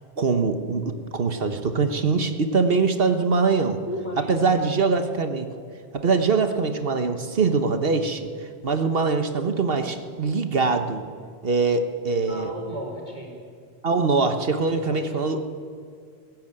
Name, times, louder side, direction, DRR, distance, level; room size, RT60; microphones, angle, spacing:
voice 1, 0.2-3.8 4.3-5.5 5.9-8.3 8.6-11.0 11.4-12.5 13.8-15.4, right 4 dB, 65° right, 8 dB, 1.4 m, -23 dB
voice 2, 3.9-4.5 12.3-13.3 14.7-15.2, left 1 dB, 45° left, -1 dB, 4.7 m, -35 dB
20.0 x 16.5 x 8.9 m, 2.2 s
omnidirectional pair, 1.1 m